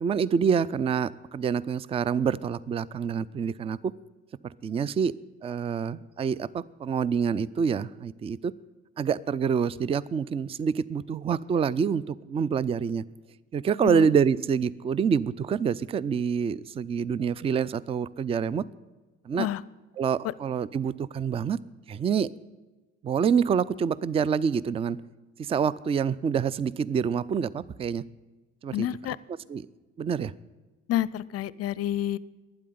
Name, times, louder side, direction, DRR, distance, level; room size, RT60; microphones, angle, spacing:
voice 1, 0.0-3.9 4.6-5.1 5.4-8.5 9.0-13.0 13.5-18.6 19.2-19.5 20.0-21.6 21.9-22.3 23.0-25.0 25.4-28.0 28.6-28.9 29.5-29.7 30.0-30.3, right 7 dB, 15° right, 21 dB, 0.4 m, -26 dB
voice 2, 28.7-29.2 30.9-32.2, left 13 dB, 40° left, 21 dB, 0.6 m, -29 dB
12.0 x 9.6 x 9.3 m, 1.2 s
figure-of-eight pair, 50°, 38 cm